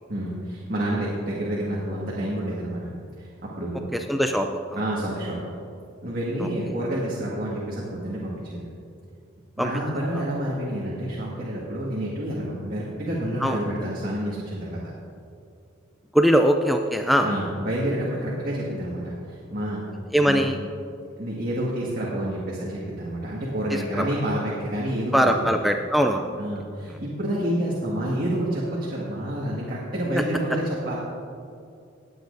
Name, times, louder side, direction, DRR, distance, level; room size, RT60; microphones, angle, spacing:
voice 1, 0.1-2.9 3.2-3.9 4.8-5.5 6.0-8.6 9.6-14.8 17.2-19.9 20.3-20.4 21.2-25.3 26.4-31.0, right 1 dB, 45° right, -6 dB, 1.7 m, -28 dB
voice 2, 3.9-4.8 6.4-6.5 9.6-9.7 10.1-10.2 13.4-13.6 16.1-17.3 20.1-20.6 23.7-24.1 25.1-26.3 26.9-27.0 30.1-30.2, equal, ahead, 4 dB, 0.3 m, -22 dB
20.0 x 8.4 x 2.6 m, 2.4 s
head